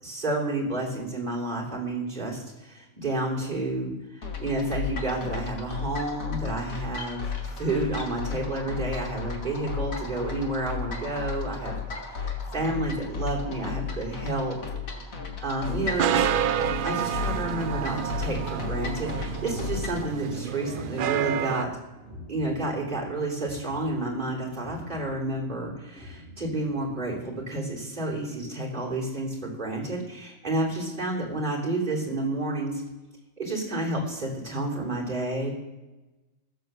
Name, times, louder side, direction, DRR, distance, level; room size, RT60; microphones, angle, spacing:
voice 1, 0.0-7.2 7.6-11.7 12.0-14.6 15.4-16.3 16.8-21.7 22.3-32.8 33.4-35.5, right 2 dB, 35° right, -3 dB, 3.4 m, -30 dB
sound 1, 4.2-20.1, left 5 dB, 85° left, 2.0 m, -34 dB
sound 2, 15.6-21.6, right 10 dB, 70° right, 0.5 m, -29 dB
sound 3, 20.5-27.0, left 2 dB, 10° right, 6.1 m, -48 dB
15.0 x 7.7 x 6.8 m, 1.1 s
omnidirectional pair, 1.4 m